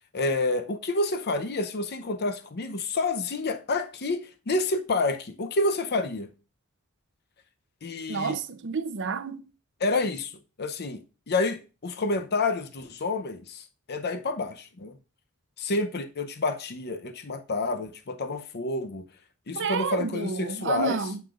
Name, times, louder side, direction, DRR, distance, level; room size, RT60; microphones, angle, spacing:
voice 1, 0.1-6.3 7.8-8.4 9.8-10.3 10.6-15.0 15.6-19.0 19.5-21.0, left 2 dB, 50° left, 0.7 m, -29 dB
voice 2, 8.1-9.5 19.5-21.2, right 5 dB, 55° right, 0.7 m, -30 dB
9.4 x 6.9 x 2.5 m
head